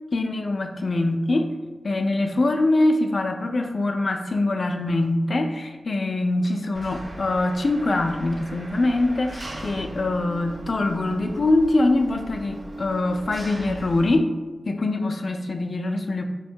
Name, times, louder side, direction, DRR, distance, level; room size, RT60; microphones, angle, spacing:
voice 1, 0.1-1.6 1.8-14.3 14.7-16.2, left 2 dB, 45° left, 5 dB, 0.4 m, -23 dB
Engine, 6.7-14.2, right 1 dB, 30° right, 0.5 m, -38 dB
4.6 x 2.1 x 4.4 m, 1.2 s
wide cardioid pair, 105°, 0 cm